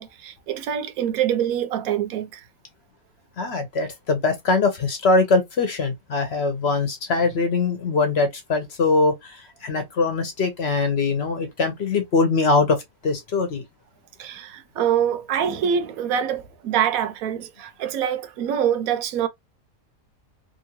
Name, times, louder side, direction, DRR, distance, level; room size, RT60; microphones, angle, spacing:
voice 1, 0.0-2.4 14.2-19.3, right 9 dB, 80° right, 1.0 m, -25 dB
voice 2, 3.4-9.1 9.6-12.8 13.0-13.6, left 3 dB, 55° left, 0.8 m, -22 dB
2.8 x 2.5 x 2.8 m
omnidirectional pair, 1.5 m